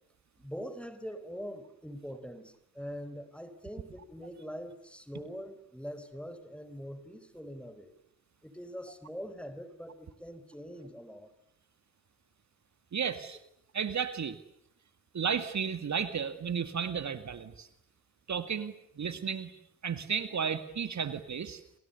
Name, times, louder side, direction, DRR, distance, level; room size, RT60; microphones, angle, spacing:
voice 1, 0.4-7.9 8.4-11.3, equal, 5° left, 12 dB, 4.6 m, -43 dB
voice 2, 12.9-13.4 13.7-14.4 15.1-17.7 18.3-19.5 19.8-21.6, right 7 dB, 40° right, 11 dB, 2.0 m, -33 dB
29.5 x 27.5 x 6.9 m, 0.76 s
hypercardioid pair, 45°, 42 cm